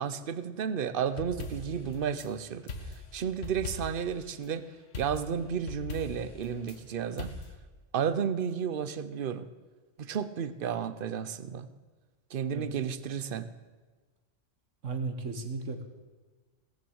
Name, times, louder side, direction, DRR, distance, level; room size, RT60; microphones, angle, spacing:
voice 1, 0.0-4.6 5.0-7.3 7.9-9.5 10.0-11.7 12.3-13.5, right 7 dB, 50° right, 13 dB, 0.9 m, -32 dB
sound 1, 1.1-2.3 2.7-4.1 4.9-6.8 7.2-7.5, left 3 dB, 80° left, 1.8 m, -41 dB
voice 2, 14.8-15.8, right 4 dB, 85° right, 7 dB, 1.7 m, -35 dB
17.5 x 7.0 x 7.9 m, 1.3 s
omnidirectional pair, 1.3 m